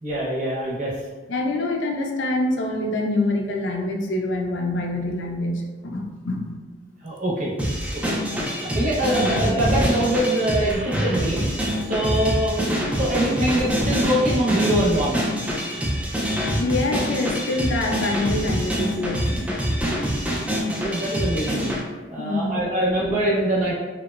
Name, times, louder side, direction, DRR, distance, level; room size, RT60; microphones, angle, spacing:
voice 1, 0.0-0.9 7.0-7.5 7.9-11.4 11.8-12.7 12.9-15.3 20.5-21.7 22.1-23.7, right 1 dB, 40° right, -5 dB, 0.7 m, -23 dB
voice 2, 1.3-6.6 16.6-19.5 22.2-22.6 23.0-23.1, left 2 dB, 70° left, 1 dB, 0.4 m, -25 dB
sound 1, 7.6-21.8, equal, 5° right, 0.3 m, -25 dB
2.9 x 2.0 x 2.2 m, 1.3 s
head